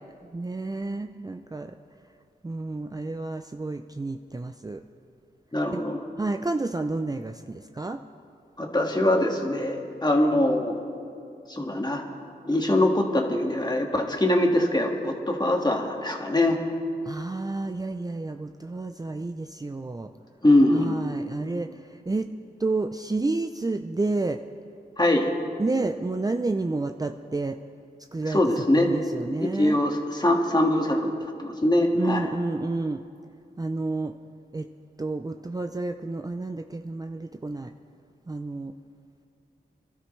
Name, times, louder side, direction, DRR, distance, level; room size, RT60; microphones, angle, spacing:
voice 1, 0.3-1.7 2.4-4.8 5.7-5.8 6.2-8.0 17.1-20.1 20.7-22.3 22.6-24.4 25.6-27.6 28.1-28.4 28.7-29.8 31.9-33.0 33.6-34.1 34.5-34.7 35.0-37.7 38.3-38.7, right 3 dB, 20° right, 6 dB, 0.5 m, -30 dB
voice 2, 5.5-6.0 8.6-10.8 11.5-12.0 12.5-16.6 20.4-21.0 25.0-25.3 28.3-28.9 29.4-31.1 31.4-32.3, left 1 dB, 25° left, 1 dB, 1.8 m, -23 dB
26.0 x 12.5 x 3.2 m, 2.5 s
cardioid pair, 60°, 18 cm